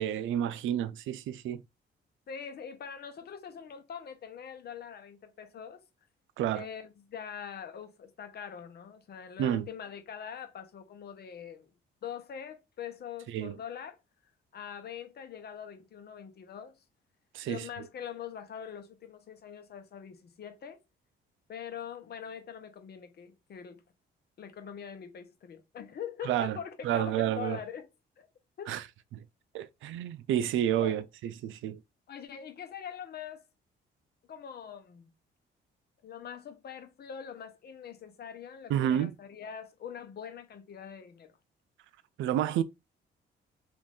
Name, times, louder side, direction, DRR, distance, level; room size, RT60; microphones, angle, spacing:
voice 1, 0.0-1.6 6.4-6.6 9.4-9.7 13.3-13.6 17.3-17.6 26.2-26.6 26.8-27.6 28.7-28.8 29.1-29.2 29.5-31.8 38.7-39.1 42.2-42.6, right 11 dB, 80° right, 0.4 m, -30 dB
voice 2, 2.3-5.8 6.5-11.7 12.0-14.0 14.5-16.8 17.4-20.8 21.5-23.8 24.4-27.9 28.2-28.3 28.6-28.7 30.8-31.0 32.1-33.4 34.3-35.1 36.0-41.4, left 8 dB, 55° left, 0.9 m, -43 dB
3.1 x 2.6 x 3.6 m
cardioid pair, 90°, 20 cm